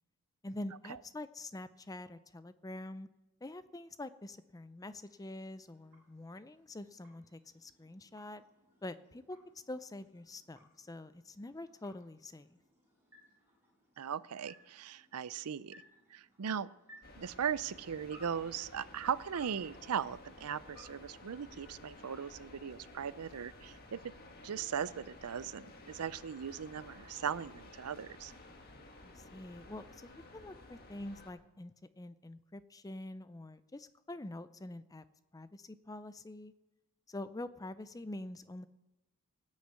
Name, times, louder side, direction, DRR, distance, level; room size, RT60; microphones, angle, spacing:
voice 1, 0.4-3.1 3.4-8.4 8.8-12.6 29.0-35.0 35.3-36.5 37.1-38.7, left 1 dB, 15° left, 13 dB, 0.5 m, -46 dB
sound 1, 4.3-22.0, left 1 dB, 10° right, 6.2 m, -64 dB
voice 2, 14.0-15.8 16.1-16.7 17.2-24.0 24.4-28.3, right 7 dB, 85° right, 18 dB, 0.5 m, -38 dB
sound 2, 17.0-31.3, left 2 dB, 45° left, 1.8 m, -54 dB
18.0 x 6.5 x 8.2 m, 1.0 s
head